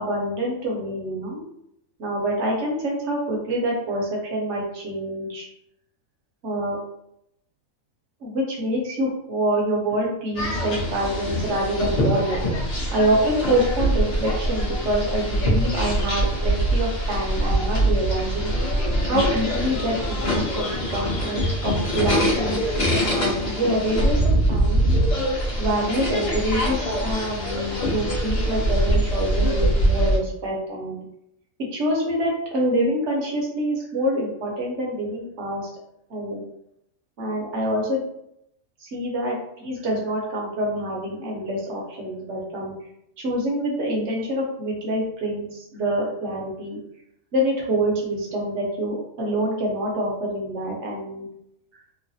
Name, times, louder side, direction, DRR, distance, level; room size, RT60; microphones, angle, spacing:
voice 1, 0.0-1.4 2.0-5.5 6.4-6.7 8.2-12.5 12.9-18.5 19.0-24.2 24.5-25.0 25.6-31.0 31.7-35.6 36.1-36.4 37.2-38.0 38.8-42.7 43.2-46.8 47.3-51.3, right 1 dB, 60° right, -2 dB, 1.0 m, -26 dB
sound 1, 10.3-30.2, equal, 35° left, 0.7 m, -23 dB
3.1 x 2.1 x 2.6 m, 0.77 s
omnidirectional pair, 1.4 m